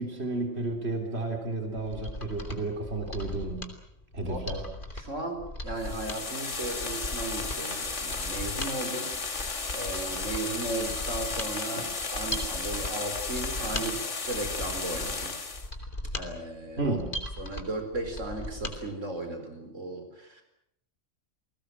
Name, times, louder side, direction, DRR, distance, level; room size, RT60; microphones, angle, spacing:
voice 1, 0.0-3.7 4.1-4.6 11.8-11.9 16.8-17.2, right 2 dB, 55° right, 3 dB, 3.8 m, -32 dB
Mechanisms, 1.7-18.8 19.1-19.2, left 1 dB, 45° left, 3.5 m, -39 dB
voice 2, 4.2-4.7 4.9-15.3 16.1-17.0 17.4-20.4, right 2 dB, 85° right, 6 dB, 4.8 m, -36 dB
sound 1, 5.8-15.7, left 4 dB, 70° left, 2.4 m, -34 dB
29.5 x 20.0 x 7.8 m, 0.74 s
omnidirectional pair, 1.3 m